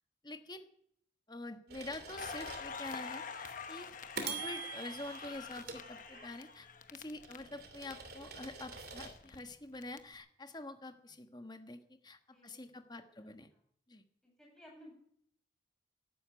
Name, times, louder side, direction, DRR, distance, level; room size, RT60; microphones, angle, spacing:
voice 1, 0.2-0.7 1.3-3.9 4.2-13.5 13.9-14.0, left 2 dB, 20° left, 7 dB, 1.3 m, -46 dB
sound 1, 1.7-3.0 3.4-3.6 4.2-6.5 7.0-9.2, right 5 dB, 55° right, 2.8 m, -46 dB
Crackle, 2.1-7.9 8.2-10.0, left 5 dB, 45° left, 1.0 m, -46 dB
voice 2, 12.3-13.3 13.5-13.6 14.2-14.9, equal, 5° left, -2 dB, 7.7 m, -59 dB
12.5 x 12.0 x 9.5 m, 0.70 s
head